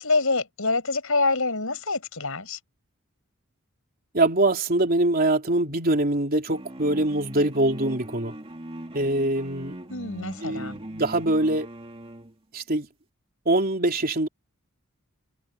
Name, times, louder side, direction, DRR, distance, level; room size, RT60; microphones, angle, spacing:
voice 1, 0.0-2.6 9.9-10.8, left 3 dB, 65° left, 7.6 m, -26 dB
voice 2, 4.1-8.3 8.9-9.7 10.4-11.7 12.5-12.9 13.5-14.3, right 2 dB, 45° right, 3.6 m, -23 dB
sound 1, 6.5-12.3, right 1 dB, 25° right, 2.4 m, -40 dB
head